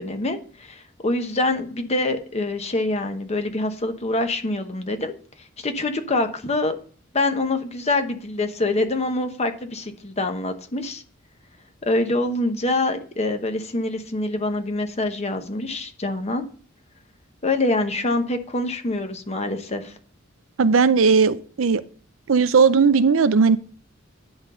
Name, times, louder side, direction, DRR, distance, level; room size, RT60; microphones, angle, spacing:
voice 1, 0.0-5.1 5.6-6.7 7.1-11.0 11.9-16.4 17.4-19.9, left 2 dB, 35° left, 7 dB, 1.0 m, -25 dB
voice 2, 20.6-21.8 22.3-23.6, right 5 dB, 75° right, 14 dB, 0.5 m, -17 dB
10.0 x 3.9 x 5.5 m, 0.43 s
head